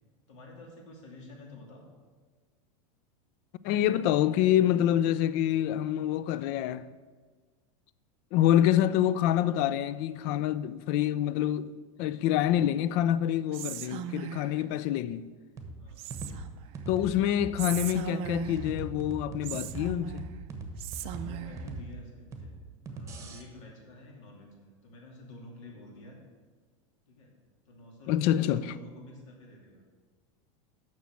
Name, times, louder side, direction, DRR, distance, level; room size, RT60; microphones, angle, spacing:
voice 1, 0.3-1.9 14.7-14.9 15.8-16.0 21.0-22.5 22.9-26.2 27.1-27.3 27.6-29.8, left 2 dB, 65° left, 2.7 m, -49 dB
voice 2, 3.6-6.9 8.3-11.7 12.0-15.3 16.9-20.3 28.1-28.6, left 11 dB, 45° left, 0.4 m, -26 dB
Whispering, 13.5-14.6 16.0-16.7 17.6-18.8 19.4-20.4 20.8-21.6, right 11 dB, 35° right, 0.5 m, -38 dB
sound 1, 15.6-23.4, right 3 dB, 20° right, 1.1 m, -41 dB
7.3 x 6.0 x 7.5 m
supercardioid pair, 155°, 17 cm